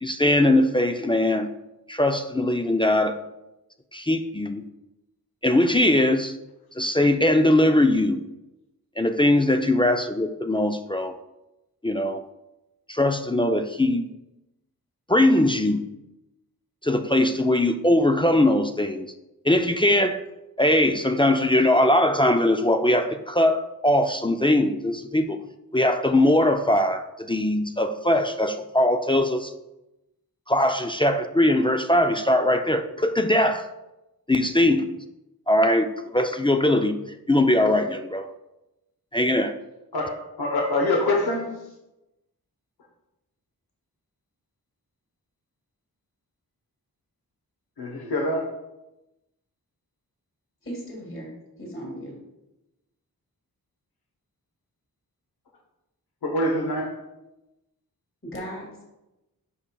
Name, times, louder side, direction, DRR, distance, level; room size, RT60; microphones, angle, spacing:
voice 1, 0.0-1.5 1.9-3.2 3.9-4.7 5.4-6.3 6.8-8.2 9.0-11.2 11.8-12.2 12.9-14.0 15.1-15.8 16.8-19.1 19.4-20.2 20.6-25.4 25.7-29.5 30.5-33.7 34.3-34.9 35.5-37.0 37.3-38.3 39.1-39.5, left 1 dB, 15° left, 6 dB, 0.4 m, -21 dB
voice 2, 40.4-41.4 47.8-48.4 56.2-56.9, left 1 dB, 90° left, 1 dB, 1.0 m, -24 dB
voice 3, 50.6-52.2 58.2-58.8, equal, 35° left, -3 dB, 2.2 m, -37 dB
9.9 x 5.5 x 2.3 m, 0.96 s
wide cardioid pair, 70°, 37 cm